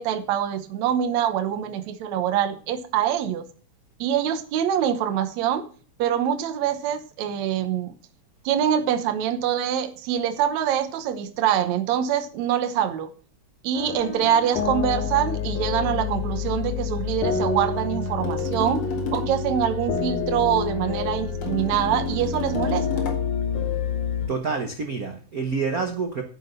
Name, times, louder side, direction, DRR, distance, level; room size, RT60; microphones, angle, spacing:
voice 1, 0.0-3.4 4.0-5.7 6.0-7.9 8.5-13.1 13.6-18.9 19.1-23.0, right 9 dB, 70° right, 2.2 m, -24 dB
sound 1, 13.7-24.3, left 5 dB, 85° left, 3.4 m, -28 dB
sound 2, 18.2-19.4 21.4-23.3, left 6 dB, 55° left, 2.9 m, -33 dB
voice 2, 24.3-26.2, right 5 dB, 85° right, 0.8 m, -27 dB
10.0 x 7.6 x 6.8 m
omnidirectional pair, 3.5 m